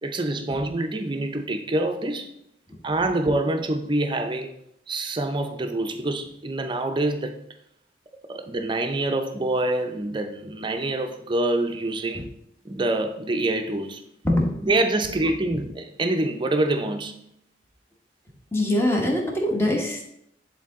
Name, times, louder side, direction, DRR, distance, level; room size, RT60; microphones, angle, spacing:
voice 1, 0.0-2.3 2.8-4.5 4.9-7.4 8.3-12.3 12.6-14.0 14.6-17.2, right 2 dB, 25° right, 0.6 m, -26 dB
voice 2, 14.2-14.7 18.5-20.1, left 1 dB, 15° left, 1.1 m, -23 dB
10.0 x 3.9 x 3.6 m
head